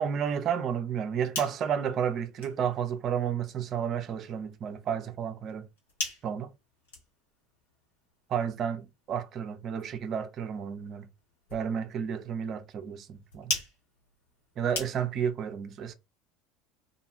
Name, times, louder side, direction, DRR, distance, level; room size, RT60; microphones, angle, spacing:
voice 1, 0.0-5.6 6.2-6.5 8.3-11.0 11.5-13.5 14.6-15.9, right 8 dB, 45° right, 0.4 m, -31 dB
sound 1, 1.1-15.4, left 2 dB, 75° left, 1.1 m, -43 dB
2.4 x 2.2 x 2.8 m
figure-of-eight pair, 65°, 0 cm